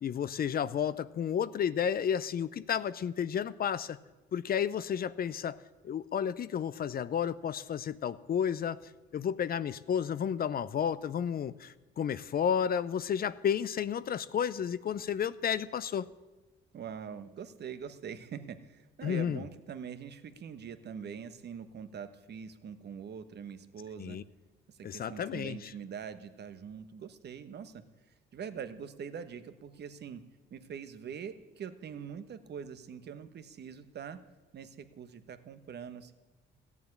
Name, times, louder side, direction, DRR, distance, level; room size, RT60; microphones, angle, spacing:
voice 1, 0.0-4.0 4.3-5.6 5.8-16.1 19.0-19.4 24.0-24.2 24.8-25.7, left 8 dB, 50° left, 16 dB, 0.6 m, -32 dB
voice 2, 16.7-24.2 24.7-27.8 28.3-30.2 30.5-34.2 34.5-36.1, right 7 dB, 55° right, 10 dB, 1.2 m, -43 dB
14.5 x 7.2 x 9.7 m, 1.2 s
cardioid pair, 90°, 20 cm